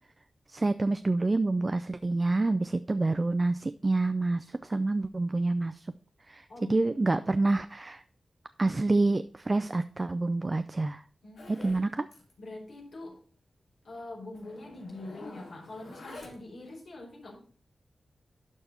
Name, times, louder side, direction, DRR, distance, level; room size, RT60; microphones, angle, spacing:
voice 1, 0.5-5.9 6.3-6.4 6.7-8.0 8.6-11.0 11.5-12.1, right 2 dB, 35° right, 11 dB, 0.4 m, -27 dB
voice 2, 6.5-7.2 11.2-11.7 12.4-13.2 13.8-17.4, left 2 dB, 70° left, -2 dB, 4.4 m, -44 dB
Zipper (clothing), 11.4-11.9 12.1-12.3 12.6-12.7 13.1-13.2 13.9-14.0 14.3-16.6, left 3 dB, 90° left, 3.1 m, -47 dB
12.0 x 4.6 x 4.3 m, 0.43 s
wide cardioid pair, 75°, 0 cm